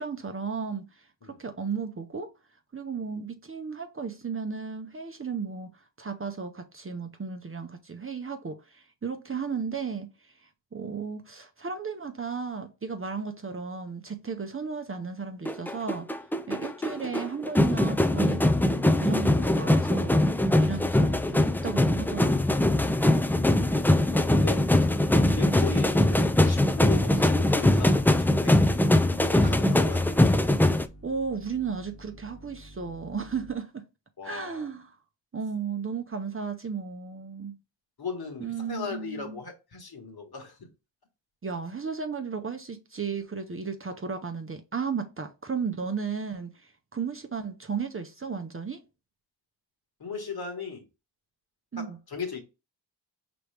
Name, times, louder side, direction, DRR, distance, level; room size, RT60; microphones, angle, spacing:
voice 1, 0.0-2.3 2.7-16.1 16.5-20.2 20.6-22.5 31.0-33.9 34.2-35.0 35.3-37.6 38.4-39.4 41.4-48.8 51.7-52.0, right 5 dB, 30° right, 0.7 m, -34 dB
sound 1, 15.5-30.9, left 1 dB, 5° left, 0.3 m, -22 dB
sound 2, 20.6-33.5, right 1 dB, 30° left, 1.0 m, -49 dB
voice 2, 23.3-24.9 25.3-28.6 29.1-30.0 34.2-34.7 38.0-40.7 50.0-50.8 51.8-52.4, left 5 dB, 55° left, 1.5 m, -38 dB
4.7 x 3.0 x 3.3 m
cardioid pair, 55°, 45 cm